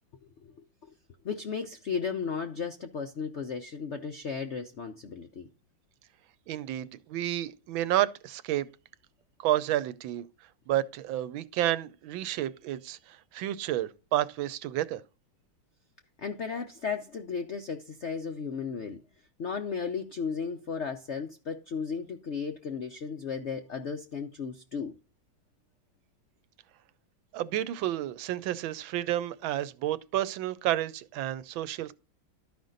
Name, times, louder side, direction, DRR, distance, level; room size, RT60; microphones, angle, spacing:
voice 1, 0.4-0.9 1.2-5.5 16.2-19.0 19.4-24.9, left 6 dB, 70° left, 0.6 m, -35 dB
voice 2, 6.5-8.7 9.4-10.3 10.7-15.0 27.3-31.9, right 13 dB, 80° right, 1.4 m, -30 dB
12.5 x 5.2 x 3.9 m
omnidirectional pair, 2.2 m